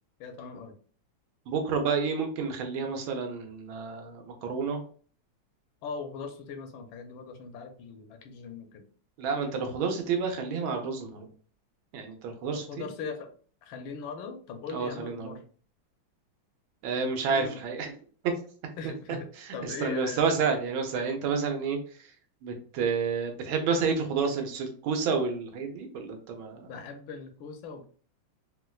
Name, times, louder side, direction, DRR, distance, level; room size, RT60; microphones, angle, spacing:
voice 1, 0.2-0.8 5.8-8.9 12.5-13.3 13.6-15.4 17.3-17.6 18.8-20.3 26.7-27.9, left 5 dB, 80° left, 5 dB, 1.4 m, -40 dB
voice 2, 1.5-4.8 9.2-11.3 11.9-12.9 14.7-15.4 16.8-17.9 19.4-19.5 19.8-21.8 22.4-26.7, right 5 dB, 85° right, 4 dB, 1.5 m, -30 dB
4.2 x 2.2 x 2.3 m, 0.44 s
omnidirectional pair, 2.2 m